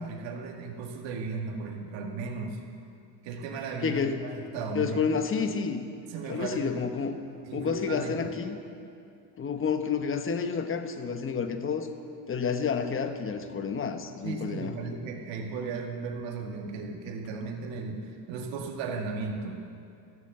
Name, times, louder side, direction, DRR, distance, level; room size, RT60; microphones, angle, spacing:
voice 1, 0.0-2.6 3.2-5.1 6.1-7.1 7.4-8.3 14.2-19.6, right 4 dB, 75° right, 1 dB, 1.9 m, -36 dB
voice 2, 3.8-4.2 4.7-5.8 6.3-7.2 7.5-8.6 9.4-11.9 12.3-14.7, left 6 dB, 30° left, 8 dB, 1.0 m, -29 dB
14.5 x 7.4 x 7.7 m, 2.5 s
cardioid pair, 105°, 44 cm